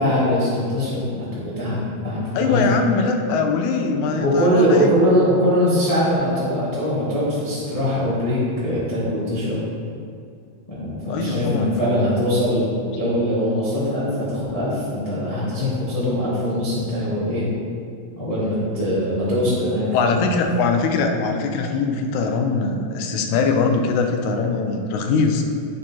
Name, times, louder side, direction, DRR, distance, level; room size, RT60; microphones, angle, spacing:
voice 1, 0.0-2.7 4.2-9.6 10.7-12.7 12.9-17.4 18.2-20.3, equal, 30° left, -10 dB, 0.6 m, -22 dB
voice 2, 2.4-4.9 11.1-12.2 19.9-25.4, left 4 dB, 90° left, 4 dB, 2.1 m, -22 dB
7.8 x 6.2 x 2.9 m, 2.3 s
omnidirectional pair, 3.3 m